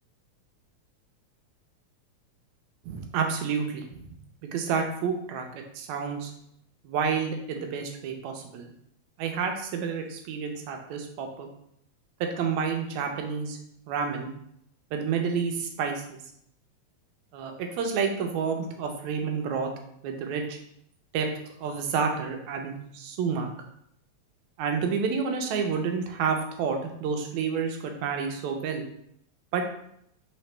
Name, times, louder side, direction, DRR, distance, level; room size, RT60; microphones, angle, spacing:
voice 1, 2.9-4.0 4.4-6.3 6.8-8.7 9.2-11.5 12.2-13.6 13.9-14.3 14.9-16.2 17.3-19.7 20.0-20.6 21.1-21.3 21.6-23.5 24.6-28.8 29.5-29.6, right 6 dB, 80° right, 4 dB, 1.9 m, -29 dB
4.9 x 3.0 x 3.2 m, 0.72 s
omnidirectional pair, 3.4 m